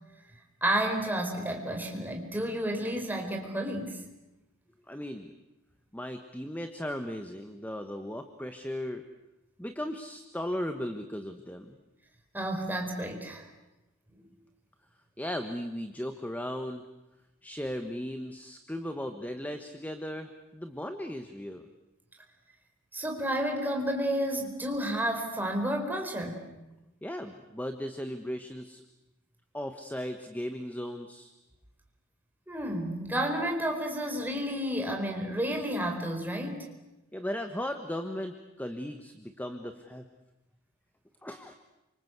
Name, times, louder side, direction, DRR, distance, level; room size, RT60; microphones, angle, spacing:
voice 1, 0.6-4.0 12.3-13.5 22.9-26.5 32.5-36.6, right 1 dB, 10° right, 2 dB, 4.6 m, -31 dB
voice 2, 4.9-5.3 5.9-9.0 9.6-11.8 15.2-16.8 17.4-21.7 27.0-28.8 29.5-31.3 37.1-40.0 41.2-41.5, equal, 5° left, 7 dB, 1.2 m, -37 dB
28.0 x 26.0 x 8.2 m, 1.0 s
head